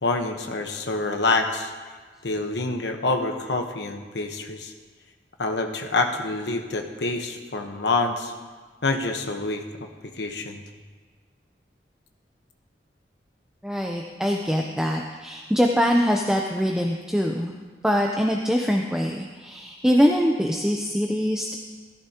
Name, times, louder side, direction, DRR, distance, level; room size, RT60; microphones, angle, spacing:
voice 1, 0.0-1.7 2.2-4.7 5.4-8.3 8.8-9.9 10.1-10.6, left 3 dB, 75° left, 4 dB, 1.1 m, -26 dB
voice 2, 13.6-17.6 17.8-21.5, equal, 5° right, 1 dB, 0.6 m, -23 dB
14.5 x 14.0 x 2.9 m, 1.5 s
head